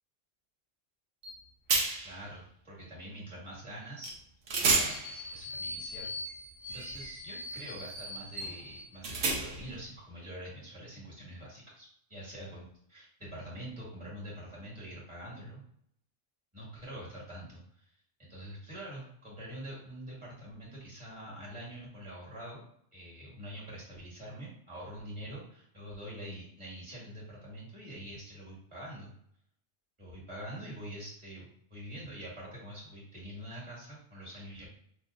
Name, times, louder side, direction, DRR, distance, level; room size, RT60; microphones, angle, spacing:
sound 1, 1.2-1.4 1.7-2.2 4.0-4.2 4.5-9.8, right 3 dB, 80° right, 1.2 m, -33 dB
voice 1, 2.0-4.2 4.6-6.2 6.7-15.6 16.5-17.9 18.2-22.6 22.9-29.1 30.0-34.7, right 1 dB, 25° right, -6 dB, 1.9 m, -45 dB
6.1 x 2.7 x 2.6 m, 0.68 s
omnidirectional pair, 1.3 m